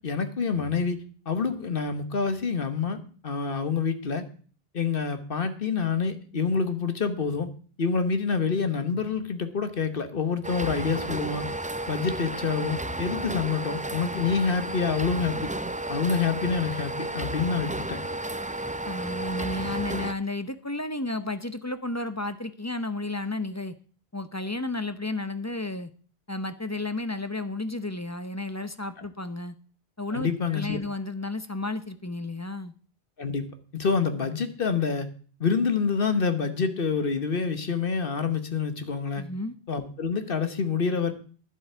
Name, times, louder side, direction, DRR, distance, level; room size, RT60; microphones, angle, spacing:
voice 1, 0.0-4.3 4.7-7.5 7.8-11.5 11.9-15.5 15.9-18.0 30.1-30.8 33.2-33.5 33.7-35.1 35.4-39.2 39.7-41.1, left 5 dB, 60° left, 9 dB, 1.3 m, -27 dB
sound 1, 10.4-20.1, right 1 dB, 15° right, 0.3 m, -33 dB
voice 2, 18.8-23.7 24.1-25.9 26.3-29.5 30.0-32.7 39.2-39.5, left 2 dB, 20° left, 11 dB, 0.6 m, -32 dB
11.0 x 7.9 x 6.8 m, 0.42 s
omnidirectional pair, 1.0 m